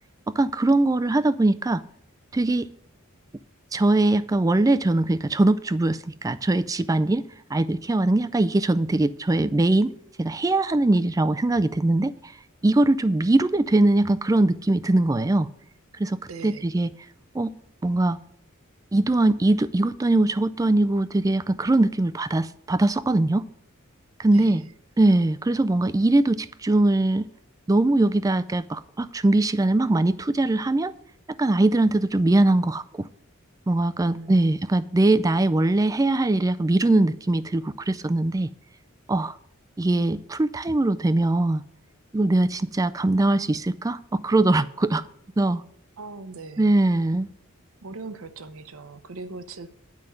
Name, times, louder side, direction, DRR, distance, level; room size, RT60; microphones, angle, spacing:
voice 1, 0.3-1.8 2.3-2.7 3.7-7.2 7.5-9.9 10.2-12.3 12.6-15.5 16.0-16.9 17.3-17.5 17.8-18.2 18.9-23.5 24.2-24.6 25.0-27.3 27.7-30.9 31.4-33.0 33.7-38.5 39.1-39.3 39.8-41.6 42.1-44.0 44.2-45.0 45.4-45.6 46.6-47.3, right 2 dB, 15° right, 0.3 m, -21 dB
voice 2, 16.3-16.7 24.3-24.7 34.1-34.5 46.0-46.8 47.8-49.7, right 3 dB, 70° right, 0.8 m, -40 dB
9.7 x 5.2 x 7.7 m
head